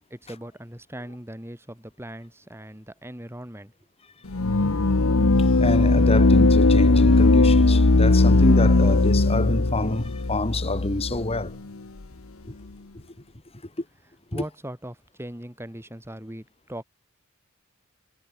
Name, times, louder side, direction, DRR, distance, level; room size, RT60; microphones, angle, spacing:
voice 1, 0.1-3.7 14.3-16.8, right 1 dB, 10° right, 3.2 m, -39 dB
sound 1, 4.3-11.5, left 2 dB, 70° left, 1.1 m, -18 dB
voice 2, 5.6-11.5 12.5-12.6 14.3-14.4, left 2 dB, 25° left, 1.8 m, -27 dB
head